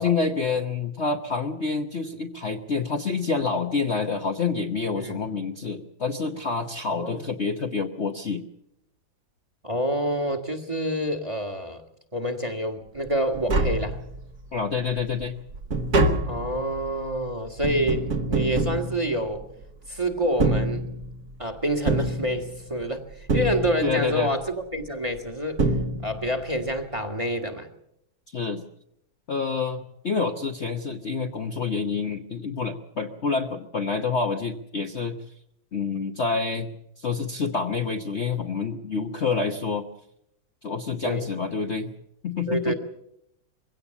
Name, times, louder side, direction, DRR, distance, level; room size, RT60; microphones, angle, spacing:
voice 1, 0.0-8.5 14.5-15.4 23.8-24.3 28.3-28.6 29.3-35.2 35.7-36.7 37.0-39.9 40.6-41.9 42.2-42.7, left 4 dB, 45° left, 4 dB, 1.0 m, -27 dB
voice 2, 6.9-7.3 9.6-11.8 12.1-14.0 16.3-19.5 19.9-20.8 21.4-25.6 26.0-27.7 41.0-41.3 42.5-42.7, equal, 15° right, 5 dB, 1.6 m, -27 dB
Tap, 13.1-13.2 13.3-14.4 14.9-19.6 20.2-21.3 21.9-22.8 23.3-24.1 25.1-25.2 25.6-26.4 26.7-26.8, right 2 dB, 55° right, 2.2 m, -26 dB
22.5 x 17.0 x 7.1 m, 0.77 s
omnidirectional pair, 2.1 m